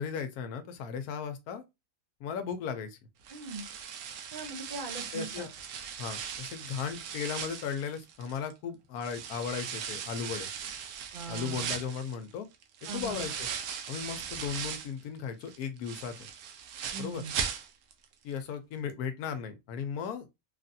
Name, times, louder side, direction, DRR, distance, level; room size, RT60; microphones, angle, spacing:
voice 1, 0.0-1.6 2.2-3.0 5.1-5.5 6.0-10.5 11.3-12.5 12.8-13.5 13.9-16.3 17.0-17.2 18.2-20.3, left 7 dB, 85° left, 1.1 m, -36 dB
sound 1, 3.2-8.5 9.0-15.0 15.4-18.0 18.3-18.4 18.9-19.0, right 7 dB, 80° right, 1.1 m, -39 dB
voice 2, 3.3-3.7 4.3-5.5 11.1-11.7 12.9-13.3 16.9-17.3, right 3 dB, 50° right, 0.6 m, -40 dB
3.3 x 2.5 x 2.6 m
omnidirectional pair, 1.6 m